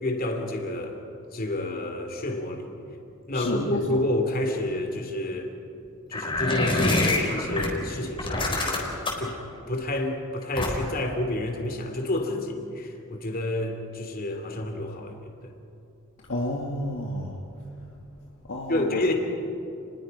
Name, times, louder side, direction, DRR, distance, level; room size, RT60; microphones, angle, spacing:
voice 1, 0.0-1.0 1.3-2.7 3.3-5.5 6.1-8.9 9.2-9.4 9.7-15.5 18.7-19.1, left 1 dB, 45° left, 4 dB, 2.8 m, -29 dB
voice 2, 3.3-4.0 16.3-17.4 18.5-19.1, left 1 dB, 60° left, -1 dB, 1.8 m, -30 dB
sound 1, 6.1-7.7 8.2-9.3 10.6-11.0, left 2 dB, 25° left, 3.9 m, -25 dB
30.0 x 21.0 x 5.4 m, 2.8 s
head